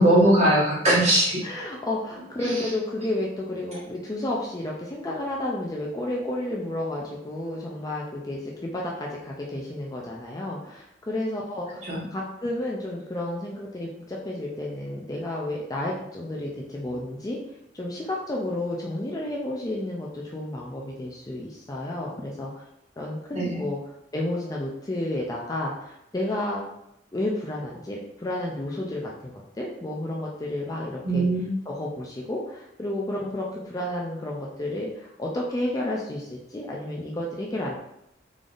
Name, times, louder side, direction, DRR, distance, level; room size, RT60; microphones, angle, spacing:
voice 1, 0.0-1.4 2.4-2.6 11.8-12.0 23.3-23.6 31.0-31.5, right 1 dB, 35° right, -6 dB, 1.4 m, -20 dB
voice 2, 1.4-11.8 12.1-17.4 17.7-22.5 23.0-23.8 24.1-26.7 27.1-31.2 31.7-37.8, left 1 dB, 20° left, -2 dB, 0.4 m, -31 dB
3.8 x 3.4 x 2.5 m, 0.80 s
head